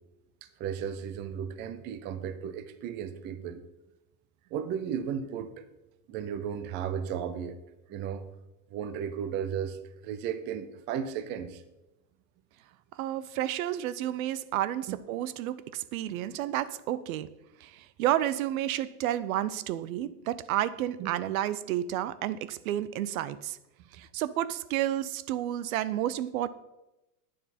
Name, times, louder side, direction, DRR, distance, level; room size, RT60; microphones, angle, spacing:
voice 1, 0.4-3.6 4.5-5.5 6.1-7.6 7.9-8.3 8.7-9.8 10.0-11.6 14.9-15.0 21.0-21.1, right 8 dB, 25° right, 11 dB, 0.5 m, -35 dB
voice 2, 13.0-17.3 17.6-23.6 23.9-26.5, right 12 dB, 65° right, 16 dB, 0.7 m, -31 dB
11.0 x 9.4 x 4.3 m, 0.97 s
supercardioid pair, 155°, 45 cm